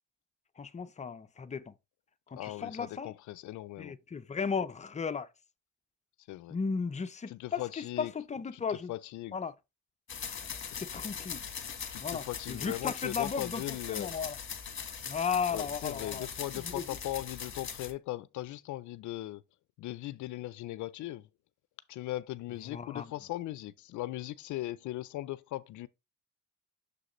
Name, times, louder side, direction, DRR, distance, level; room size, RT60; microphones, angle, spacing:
voice 1, 0.6-1.7 2.3-3.1 3.8-5.3 6.5-8.9 9.3-9.5 10.8-11.4 12.0-13.6 13.9-14.4 15.1-16.3 16.5-16.8 22.7-23.1, left 6 dB, 25° left, 0.5 m, -35 dB
voice 2, 2.3-3.9 6.3-6.6 7.3-8.1 8.5-9.4 10.7-10.8 11.9-14.1 15.5-19.4 19.8-21.3 21.9-25.9, left 16 dB, 75° left, 0.4 m, -39 dB
sound 1, 10.1-17.9, left 7 dB, 40° left, 1.3 m, -41 dB
6.6 x 4.9 x 3.0 m
cardioid pair, 90°, 30 cm